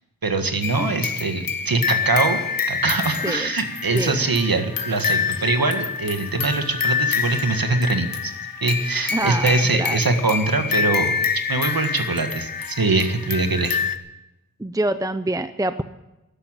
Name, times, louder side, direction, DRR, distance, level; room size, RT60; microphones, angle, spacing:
voice 1, 0.2-2.4 2.7-8.3 8.6-11.1 11.5-13.8, right 3 dB, 85° right, 7 dB, 1.8 m, -23 dB
sound 1, 0.6-14.0, left 6 dB, 75° left, 1.0 m, -26 dB
voice 2, 3.9-4.3 9.1-10.0 14.6-15.8, right 1 dB, 10° right, 11 dB, 0.6 m, -26 dB
14.0 x 11.5 x 9.0 m, 0.98 s
wide cardioid pair, 55°, 34 cm